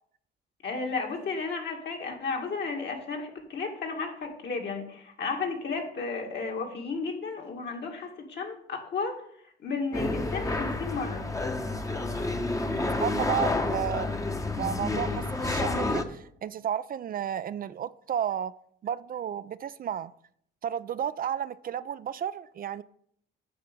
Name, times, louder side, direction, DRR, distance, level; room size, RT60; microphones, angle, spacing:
voice 1, 0.6-9.2 9.6-11.3, left 4 dB, 60° left, 2.1 m, -33 dB
sound 1, 9.9-16.0, left 2 dB, 15° left, 0.9 m, -29 dB
voice 2, 12.6-14.2 14.6-18.5 18.8-20.1 20.6-22.8, right 9 dB, 45° right, 0.4 m, -32 dB
8.6 x 5.9 x 5.3 m
cardioid pair, 90°, 20 cm